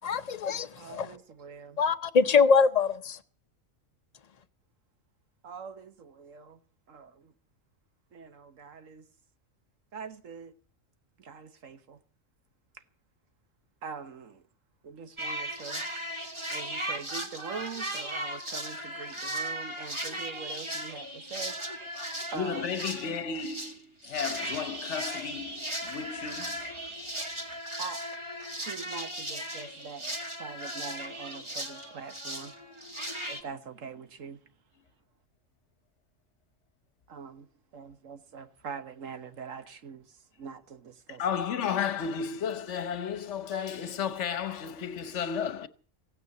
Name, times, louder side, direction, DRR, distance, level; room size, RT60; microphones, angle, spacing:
voice 1, 0.0-1.1 1.8-3.2, left 5 dB, 35° left, 0.8 m, -24 dB
voice 2, 0.8-1.8 5.4-6.6 6.9-7.3 8.1-9.1 9.9-10.5 11.2-12.0 12.7-12.8 13.8-14.5 14.8-15.9 16.5-23.1 27.8-28.0 28.5-30.1 30.4-32.5 33.2-34.4 37.1-37.5 37.7-41.2, right 5 dB, 75° right, 1.6 m, -43 dB
sound 1, 15.2-23.8 24.0-33.4, right 1 dB, 20° right, 2.0 m, -37 dB
voice 3, 22.3-27.5 41.1-45.7, left 7 dB, 65° left, 1.3 m, -33 dB
16.0 x 9.5 x 8.2 m
omnidirectional pair, 1.4 m